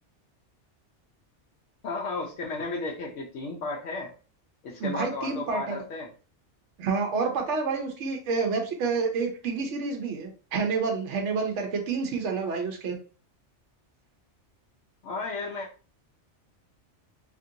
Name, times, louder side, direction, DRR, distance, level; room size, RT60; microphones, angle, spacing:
voice 1, 1.8-4.1 4.6-6.1 15.0-15.7, left 3 dB, 85° left, -1 dB, 0.9 m, -33 dB
voice 2, 4.8-5.8 6.8-13.0, right 4 dB, 75° right, 3 dB, 1.0 m, -29 dB
2.9 x 2.5 x 2.7 m, 0.36 s
omnidirectional pair, 1.2 m